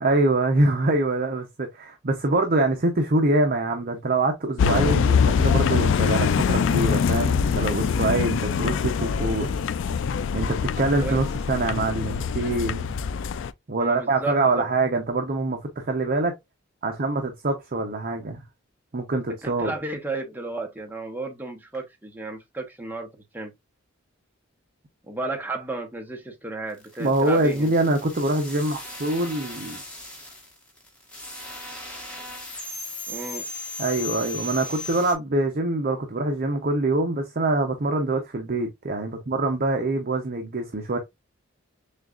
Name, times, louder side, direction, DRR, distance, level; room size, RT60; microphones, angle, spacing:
voice 1, 0.0-9.5 10.3-12.9 13.7-16.3 16.8-18.4 18.9-19.7 27.0-29.8 33.8-41.0, right 2 dB, 45° right, 0.7 m, -24 dB
sound 1, 4.6-13.5, left 6 dB, 60° left, 0.3 m, -23 dB
voice 2, 13.8-14.7 19.4-23.5 25.1-27.7 33.1-33.5, right 2 dB, 10° right, 0.9 m, -33 dB
sound 2, 26.7-35.1, left 1 dB, 5° left, 1.2 m, -37 dB
6.4 x 2.4 x 2.4 m
head